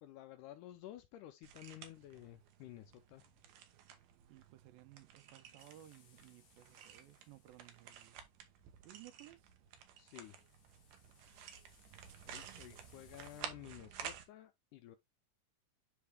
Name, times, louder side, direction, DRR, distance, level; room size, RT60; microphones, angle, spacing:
voice 1, 0.0-3.2 10.0-10.4 12.3-15.0, left 13 dB, 80° left, 1.9 m, -53 dB
sound 1, 1.4-14.3, right 8 dB, 70° right, 2.4 m, -53 dB
voice 2, 4.3-8.3 8.8-9.5 12.4-12.6, right 15 dB, 90° right, 2.4 m, -59 dB
sound 2, 5.6-8.1 10.1-13.4, left 6 dB, 65° left, 1.2 m, -69 dB
9.8 x 3.4 x 3.4 m
omnidirectional pair, 4.1 m